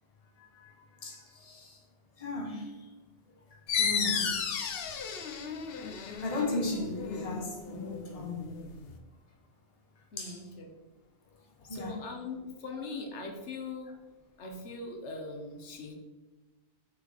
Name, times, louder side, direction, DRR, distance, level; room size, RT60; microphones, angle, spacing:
voice 1, 0.5-1.8 2.2-2.7 3.8-4.4 6.2-8.4 10.2-10.4 11.7-12.0, left 2 dB, 35° left, 1.1 m, -36 dB
sound 1, 3.7-9.0, left 6 dB, 65° left, 0.8 m, -34 dB
voice 2, 10.1-10.7 11.6-13.9 14.4-15.9, left 3 dB, 85° left, 1.2 m, -41 dB
5.9 x 4.0 x 4.1 m
omnidirectional pair, 1.1 m